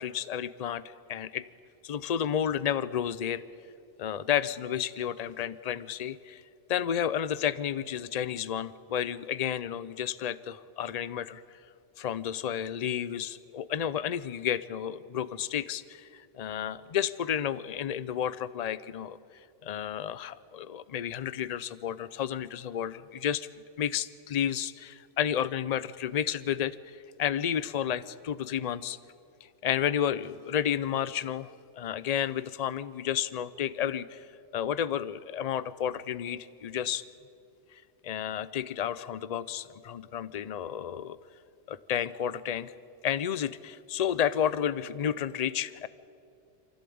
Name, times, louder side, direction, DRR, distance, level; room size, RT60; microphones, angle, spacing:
voice 1, 0.0-1.4 1.8-3.4 4.0-6.4 6.7-11.4 12.0-19.2 19.6-23.5 23.8-29.0 29.6-31.5 31.7-34.3 34.5-37.0 38.0-41.2 41.7-42.7 43.0-45.9, left 9 dB, 45° left, 17 dB, 0.6 m, -31 dB
24.0 x 15.5 x 8.6 m, 2.5 s
omnidirectional pair, 1.2 m